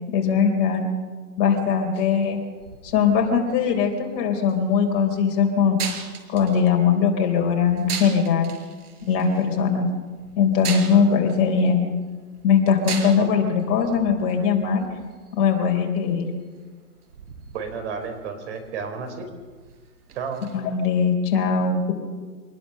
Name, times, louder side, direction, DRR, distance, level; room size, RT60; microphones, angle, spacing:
voice 1, 0.1-0.9 1.4-2.4 2.8-5.8 6.3-8.5 9.1-9.9 10.4-11.9 12.4-14.9 15.4-16.3 20.5-21.9, left 6 dB, 30° left, 3 dB, 3.8 m, -20 dB
sound 1, 1.9-20.6, right 6 dB, 70° right, 4.8 m, -40 dB
voice 2, 17.5-19.3 20.1-20.4, right 5 dB, 45° right, 7 dB, 4.9 m, -32 dB
26.5 x 20.0 x 6.7 m, 1.4 s
hypercardioid pair, 150°, 47 cm